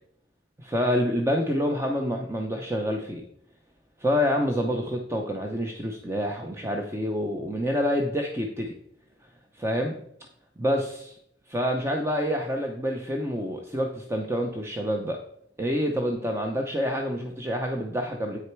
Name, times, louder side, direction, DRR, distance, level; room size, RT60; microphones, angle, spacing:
voice 1, 0.6-3.2 4.0-8.7 9.5-10.0 10.6-11.2 11.5-15.2 15.6-18.4, equal, 15° right, 2 dB, 0.7 m, -27 dB
9.0 x 6.4 x 4.6 m, 0.71 s
head